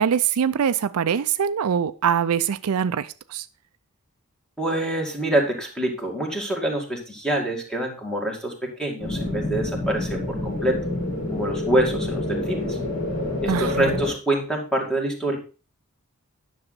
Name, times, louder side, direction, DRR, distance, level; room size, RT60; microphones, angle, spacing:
voice 1, 0.0-3.5 13.5-14.0, right 8 dB, 75° right, 0.4 m, -23 dB
voice 2, 4.6-10.8 11.3-12.8 13.4-15.4, right 1 dB, 5° left, 2.0 m, -26 dB
sound 1, 9.0-14.1, left 2 dB, 85° left, 4.8 m, -27 dB
9.8 x 6.3 x 4.0 m
head